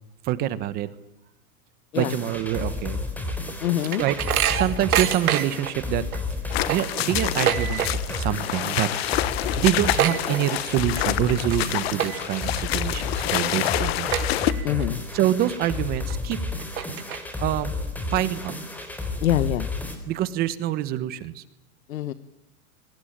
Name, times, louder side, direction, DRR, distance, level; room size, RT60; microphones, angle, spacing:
voice 1, 0.2-0.9 1.9-3.0 4.0-4.2 4.5-6.0 6.7-7.8 8.2-9.2 9.6-14.1 15.1-16.4 17.4-17.7 18.1-18.5 20.1-21.4, right 12 dB, 20° right, 15 dB, 1.2 m, -26 dB
sound 1, 1.9-20.0, left 3 dB, 5° left, 3.8 m, -32 dB
sound 2, 3.3-5.7 6.1-6.2 6.5-8.2 8.5-8.8 9.1-9.2 9.5-10.9 11.3-11.6 11.9-12.5 13.0-13.1 13.6-13.7 14.1-14.8 15.3-15.4 16.1-16.2 16.6-17.5, right 10 dB, 70° right, 4.0 m, -26 dB
voice 2, 3.6-4.0 14.6-15.0 19.2-19.7 21.9-22.1, left 12 dB, 65° left, 13 dB, 1.5 m, -24 dB
sound 3, 6.5-14.5, left 15 dB, 40° left, 1.4 m, -28 dB
27.5 x 23.5 x 8.8 m, 0.80 s
supercardioid pair, 165°, 45 cm